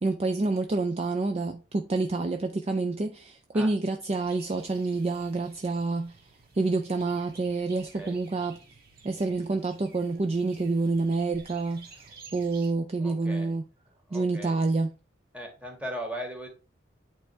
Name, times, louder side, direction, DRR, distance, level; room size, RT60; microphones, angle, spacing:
voice 1, 0.0-6.1 6.6-8.6 9.0-11.9 12.3-13.6 14.1-14.9, right 3 dB, 30° right, 0.4 m, -28 dB
sound 1, 4.1-12.7, right 4 dB, 50° right, 1.6 m, -53 dB
voice 2, 13.0-13.6 14.1-14.6 15.3-16.5, equal, 5° right, 1.7 m, -38 dB
8.7 x 3.4 x 4.3 m
head